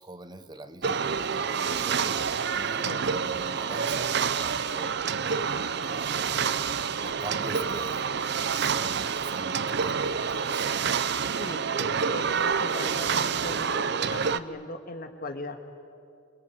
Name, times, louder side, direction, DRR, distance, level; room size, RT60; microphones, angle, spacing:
voice 1, 0.0-5.0 5.8-6.4 7.0-10.7, right 2 dB, 20° right, 10 dB, 1.0 m, -44 dB
sound 1, 0.8-14.4, right 6 dB, 60° right, 0.7 m, -28 dB
voice 2, 11.4-15.6, left 2 dB, 50° left, 6 dB, 2.1 m, -38 dB
27.5 x 23.0 x 9.3 m, 2.4 s
head